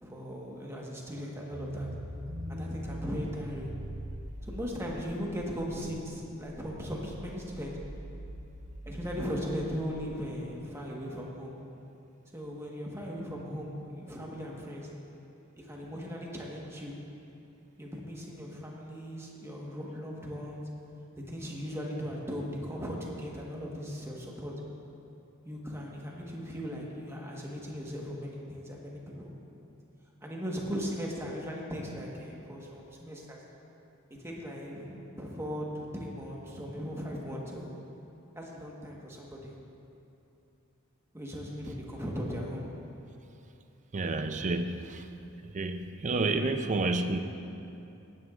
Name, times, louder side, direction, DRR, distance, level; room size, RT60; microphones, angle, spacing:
voice 1, 0.0-1.9 2.5-3.7 4.4-7.8 8.9-11.6 12.3-14.9 15.6-16.9 17.8-20.7 21.2-24.5 25.4-29.3 30.2-33.4 34.2-37.7 38.3-39.5 41.1-42.6, equal, 10° right, -3 dB, 1.3 m, -38 dB
sound 1, 1.5-9.9, equal, 85° right, 1.1 m, -42 dB
voice 2, 2.5-3.0 43.9-45.1 45.4-47.2, right 3 dB, 35° right, 8 dB, 0.5 m, -30 dB
18.0 x 9.5 x 2.5 m, 2.8 s
head